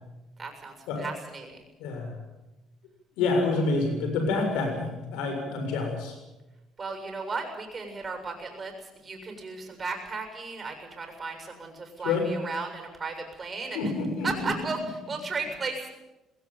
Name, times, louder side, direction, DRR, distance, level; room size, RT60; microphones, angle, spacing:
voice 1, 0.4-1.6 6.8-13.9 14.2-15.9, right 4 dB, 30° right, 5 dB, 7.0 m, -35 dB
voice 2, 3.2-6.1 12.0-12.2 13.7-14.3, left 3 dB, 85° left, 4 dB, 7.2 m, -27 dB
20.0 x 17.5 x 9.2 m, 1.0 s
cardioid pair, 95°, 0 cm